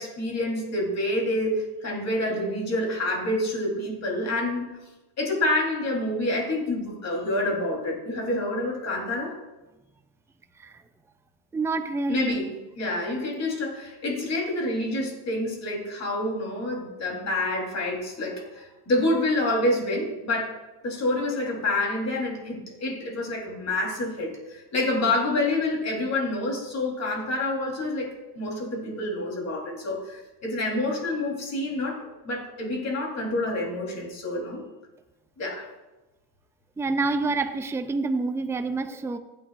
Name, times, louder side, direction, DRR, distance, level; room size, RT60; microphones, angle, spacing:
voice 1, 0.0-4.6 5.2-9.3 12.1-20.5 20.8-28.1 28.3-32.0 32.2-34.6 35.4-35.7, left 1 dB, 35° left, 0 dB, 3.7 m, -27 dB
voice 2, 11.5-12.5 36.8-39.2, right 3 dB, 5° right, 9 dB, 0.4 m, -27 dB
15.0 x 8.8 x 2.5 m, 1.1 s
supercardioid pair, 110°, 48 cm